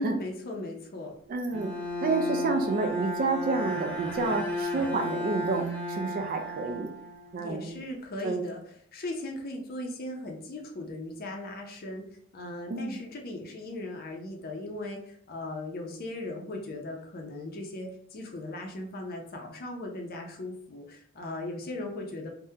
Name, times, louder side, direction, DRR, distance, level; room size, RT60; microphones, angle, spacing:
voice 1, 0.0-1.1 7.4-8.6 8.9-12.0 12.3-22.3, left 1 dB, 50° left, 1 dB, 0.5 m, -37 dB
voice 2, 1.3-1.7 2.0-6.9 7.3-7.8 8.2-8.5 12.7-13.0, right 3 dB, 45° right, 5 dB, 0.3 m, -29 dB
Bowed string instrument, 1.5-7.5, left 1 dB, 5° left, 0.7 m, -34 dB
3.5 x 2.1 x 2.7 m, 0.62 s
head